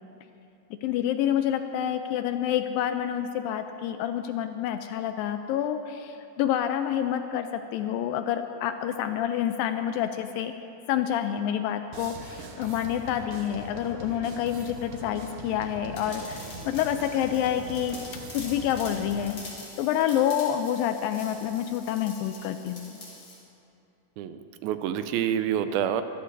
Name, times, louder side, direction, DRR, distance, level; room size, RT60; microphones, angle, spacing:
voice 1, 0.8-10.5 10.9-18.0 18.3-19.4 19.8-23.0, left 10 dB, 80° left, 8 dB, 2.1 m, -28 dB
sound 1, 11.9-19.3, right 3 dB, 65° right, 2.2 m, -42 dB
sound 2, 15.9-23.4, left 2 dB, 35° left, 4.1 m, -45 dB
voice 2, 24.2-26.0, right 9 dB, 85° right, 10 dB, 2.4 m, -27 dB
24.5 x 15.0 x 2.7 m, 2.7 s
omnidirectional pair, 4.4 m